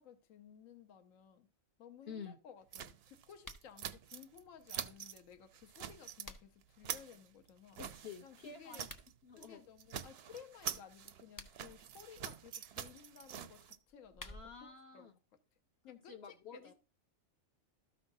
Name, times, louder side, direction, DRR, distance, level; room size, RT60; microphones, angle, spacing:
voice 1, 0.0-1.5 1.8-7.8 8.2-8.9 9.4-15.1 15.8-16.7, left 8 dB, 70° left, 1.2 m, -57 dB
voice 2, 2.1-2.4 7.8-8.9 9.2-9.6 14.2-15.1 16.1-16.7, left 6 dB, 50° left, 1.0 m, -50 dB
sound 1, 2.7-4.4 4.7-5.2 5.5-6.3 6.6-9.1 9.4-9.5 9.8-13.8, right 9 dB, 60° right, 0.7 m, -46 dB
sound 2, 3.4-3.7 5.7-6.7 8.7-9.1 11.1-11.8 13.8-14.7, left 2 dB, 25° left, 0.4 m, -53 dB
13.0 x 5.7 x 2.6 m
omnidirectional pair, 1.5 m